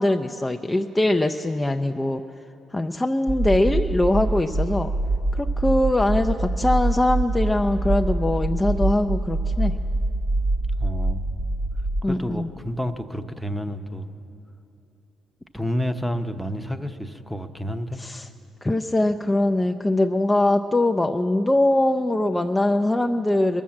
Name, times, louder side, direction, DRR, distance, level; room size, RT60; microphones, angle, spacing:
voice 1, 0.0-2.2 2.7-4.9 5.3-9.8 12.0-12.5 18.0-18.3 18.6-23.6, left 1 dB, 15° left, 4 dB, 0.5 m, -22 dB
sound 1, 3.3-12.0, right 2 dB, 30° right, 1.1 m, -25 dB
voice 2, 10.8-11.3 12.1-14.1 15.5-18.0, equal, 5° right, 8 dB, 0.8 m, -29 dB
21.5 x 7.2 x 7.5 m, 2.8 s
supercardioid pair, 70°, 0 cm